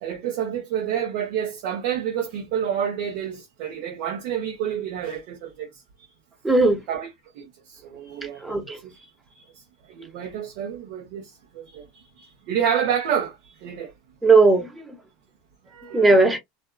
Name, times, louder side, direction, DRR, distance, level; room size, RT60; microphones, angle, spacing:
voice 1, 0.0-5.7 6.9-7.1 7.4-7.5 7.8-8.6 8.8-9.1 9.3-9.4 9.9-11.8 12.2-13.9 15.7-16.2, right 9 dB, 65° right, 0.9 m, -29 dB
voice 2, 6.4-6.8 8.4-8.8 14.2-15.0 15.9-16.4, right 3 dB, 10° right, 0.9 m, -17 dB
2.6 x 2.3 x 2.3 m
hypercardioid pair, 105°, 0 cm